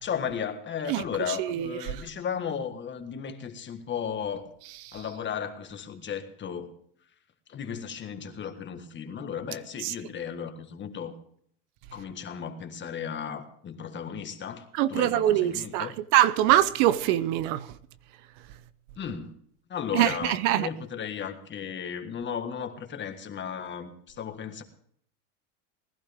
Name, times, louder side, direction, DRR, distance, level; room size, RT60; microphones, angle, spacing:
voice 1, 0.0-4.5 4.9-6.7 7.5-11.1 11.9-16.0 19.0-19.4 19.7-24.6, left 7 dB, 30° left, 1.6 m, -35 dB
voice 2, 1.4-2.0 4.9-5.0 9.8-9.9 14.7-17.7 19.9-20.7, right 13 dB, 70° right, 0.8 m, -24 dB
20.0 x 11.5 x 3.5 m
supercardioid pair, 125°, 38 cm